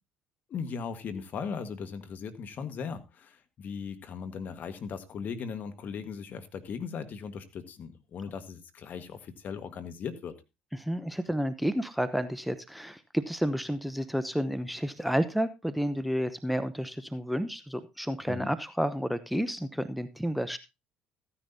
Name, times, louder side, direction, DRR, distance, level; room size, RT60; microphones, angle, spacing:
voice 1, 0.5-10.3 18.3-18.5, left 6 dB, 50° left, 10 dB, 1.5 m, -38 dB
voice 2, 10.8-20.6, equal, ahead, 13 dB, 0.9 m, -31 dB
14.5 x 10.0 x 2.7 m, 0.25 s
hypercardioid pair, 65°, 4 cm